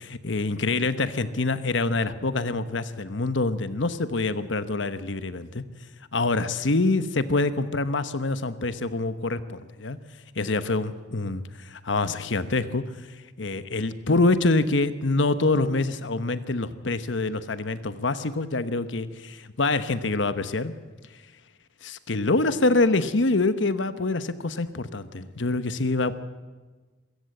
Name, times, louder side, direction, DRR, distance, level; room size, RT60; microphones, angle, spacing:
voice 1, 0.1-5.6 6.1-10.0 10.3-12.8 13.4-20.7 21.8-26.1, left 3 dB, 70° left, 12 dB, 1.0 m, -25 dB
24.0 x 15.0 x 7.8 m, 1.3 s
head